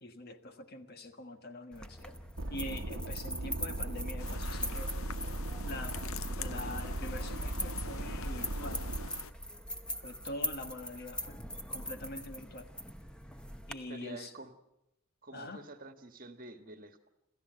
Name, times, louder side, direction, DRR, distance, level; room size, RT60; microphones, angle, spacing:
voice 1, 0.0-2.2 2.5-4.9 5.6-6.0 6.4-8.8 10.0-12.7 13.7-14.3 15.3-15.7, left 1 dB, 45° left, 1.5 m, -44 dB
sound 1, 1.7-13.7, left 1 dB, 5° left, 0.9 m, -42 dB
sound 2, 2.4-9.1, right 1 dB, 65° right, 1.0 m, -38 dB
sound 3, 4.2-9.3, left 7 dB, 70° left, 0.7 m, -46 dB
voice 2, 13.9-14.5 15.2-17.1, right 2 dB, 40° right, 1.5 m, -48 dB
27.0 x 14.5 x 7.8 m
head